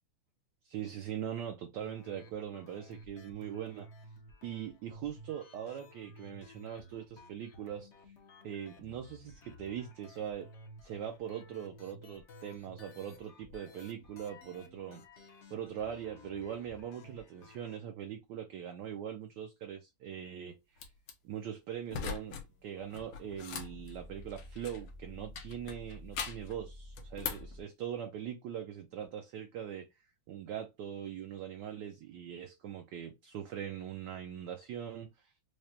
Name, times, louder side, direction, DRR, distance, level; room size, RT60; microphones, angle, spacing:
voice 1, 0.6-3.9 4.4-7.9 8.4-10.5 10.8-15.0 15.5-20.8 21.2-29.9 30.3-35.3, right 9 dB, 75° right, 1.0 m, -41 dB
sound 1, 1.8-17.8, left 1 dB, 60° left, 0.7 m, -55 dB
sound 2, 20.8-21.1 21.9-22.5 22.8-24.9 25.3-26.5 26.9-27.5, left 6 dB, 85° left, 1.6 m, -41 dB
sound 3, 22.4-27.6, left 1 dB, 20° right, 0.4 m, -51 dB
4.9 x 2.2 x 2.7 m
omnidirectional pair, 2.3 m